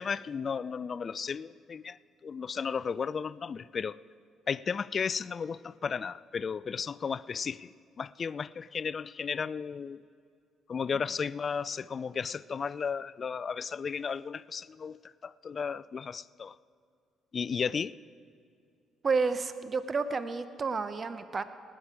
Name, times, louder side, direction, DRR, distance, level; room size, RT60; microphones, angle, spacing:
voice 1, 0.0-2.0 2.2-4.0 4.5-10.0 10.7-16.6 17.3-17.9, left 6 dB, 45° left, 20 dB, 0.3 m, -34 dB
voice 2, 19.0-21.4, right 4 dB, 40° right, 12 dB, 0.8 m, -30 dB
19.0 x 8.9 x 4.8 m, 2.4 s
hypercardioid pair, 50°, 0 cm